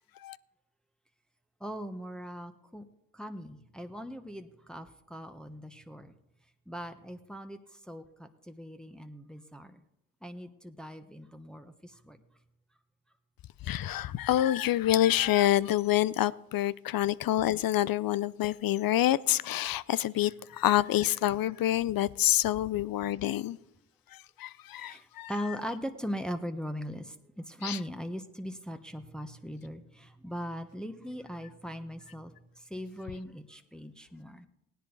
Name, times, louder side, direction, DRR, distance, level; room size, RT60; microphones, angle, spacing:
voice 1, 1.6-2.8 3.1-6.1 6.7-7.6 7.9-9.7 10.2-12.2 24.8-34.5, equal, ahead, 1.2 m, -40 dB
voice 2, 13.6-23.6 24.1-25.3 27.6-27.8, left 13 dB, 55° left, 0.6 m, -27 dB
17.5 x 10.0 x 4.0 m
hypercardioid pair, 45°, 41 cm